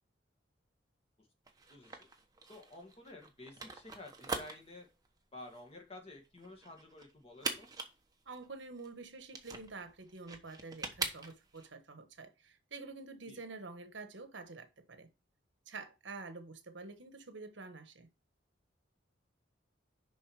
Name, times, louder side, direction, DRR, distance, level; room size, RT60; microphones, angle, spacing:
sound 1, 1.5-11.7, right 4 dB, 20° right, 1.1 m, -43 dB
voice 1, 1.7-2.1 2.5-4.9 5.3-7.7 13.3-13.4, left 2 dB, 30° left, 2.0 m, -52 dB
voice 2, 8.3-15.1 15.7-18.1, right 3 dB, 75° right, 1.2 m, -48 dB
7.1 x 5.6 x 4.7 m
head